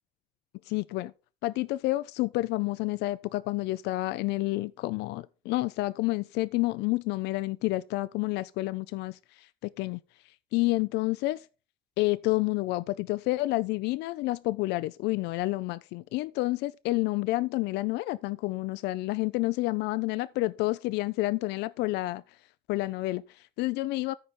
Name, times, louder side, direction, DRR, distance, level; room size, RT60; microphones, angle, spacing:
voice 1, 0.7-1.1 1.4-10.0 10.5-11.4 12.0-22.2 22.7-24.1, left 19 dB, 90° left, 0.4 m, -29 dB
13.5 x 5.0 x 4.2 m
cardioid pair, 110°, 17 cm